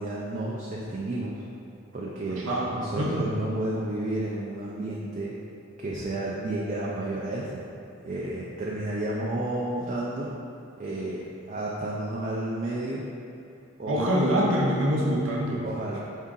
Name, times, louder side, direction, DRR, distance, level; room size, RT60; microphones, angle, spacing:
voice 1, 0.0-1.4 1.9-5.4 5.8-7.8 8.0-10.3 10.8-11.2 11.5-13.1 13.8-14.1 15.6-16.0, right 1 dB, 35° right, -4 dB, 0.4 m, -31 dB
voice 2, 2.3-3.3 13.9-15.6, equal, 75° right, -4 dB, 0.6 m, -25 dB
4.6 x 2.7 x 3.7 m, 2.6 s
head